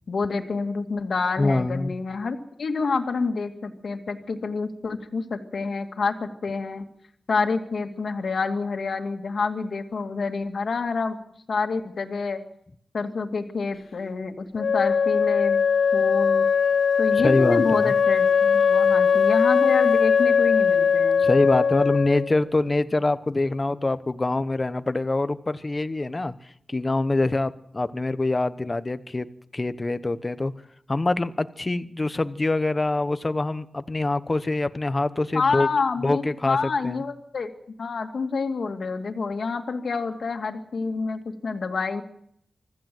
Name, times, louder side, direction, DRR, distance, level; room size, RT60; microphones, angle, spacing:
voice 1, 0.1-6.8 7.3-11.2 11.5-12.4 12.9-15.6 15.9-16.5 17.0-21.3 35.3-37.5 37.8-42.0, left 4 dB, 55° left, 6 dB, 2.3 m, -28 dB
voice 2, 1.4-2.0 17.2-17.9 21.2-26.3 26.7-29.3 29.5-30.5 30.9-35.7 36.0-36.6 36.8-37.0, left 2 dB, 25° left, 13 dB, 1.0 m, -24 dB
Wind instrument woodwind instrument, 14.6-22.3, left 6 dB, 75° left, 0.7 m, -20 dB
25.0 x 14.5 x 7.8 m, 0.69 s
wide cardioid pair, 155°, 0 cm